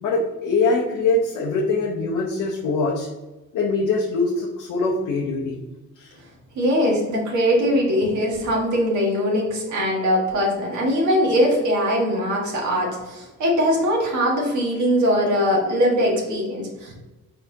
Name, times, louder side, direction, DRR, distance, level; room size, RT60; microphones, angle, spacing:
voice 1, 0.0-3.1 3.5-5.6 6.0-6.1, left 3 dB, 85° left, -2 dB, 0.8 m, -23 dB
voice 2, 6.5-16.9, equal, 75° right, -2 dB, 1.5 m, -21 dB
4.4 x 4.2 x 2.7 m, 1.1 s
cardioid pair, 90°, 30 cm